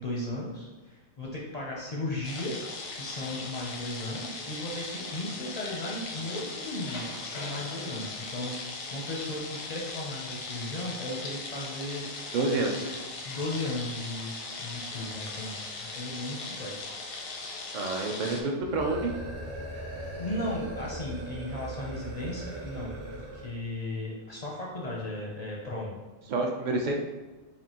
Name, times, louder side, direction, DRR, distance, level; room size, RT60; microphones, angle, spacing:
voice 1, 0.0-2.6 2.9-12.1 12.5-12.9 13.2-16.9 20.2-26.0, left 1 dB, 50° left, -3 dB, 0.5 m, -36 dB
sound 1, 2.2-18.4, left 3 dB, 85° left, 1.1 m, -39 dB
voice 2, 12.3-12.8 17.7-19.1 26.3-26.9, right 3 dB, 65° right, 1 dB, 0.4 m, -28 dB
sound 2, 18.6-23.6, right 1 dB, 50° right, 0.9 m, -39 dB
5.1 x 2.6 x 2.9 m, 1.2 s
omnidirectional pair, 1.4 m